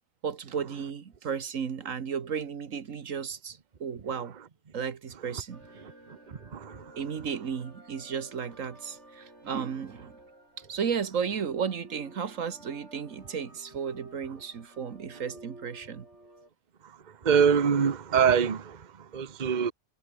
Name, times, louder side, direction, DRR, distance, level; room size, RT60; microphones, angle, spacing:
voice 1, 0.2-4.3 4.7-5.6 7.0-10.1 10.7-16.1, right 7 dB, 80° right, 1.7 m, -34 dB
sound 1, 5.5-16.5, right 1 dB, 60° right, 8.6 m, -53 dB
voice 2, 17.2-18.8 19.1-19.7, right 7 dB, 35° right, 1.1 m, -23 dB
omnidirectional pair, 1.3 m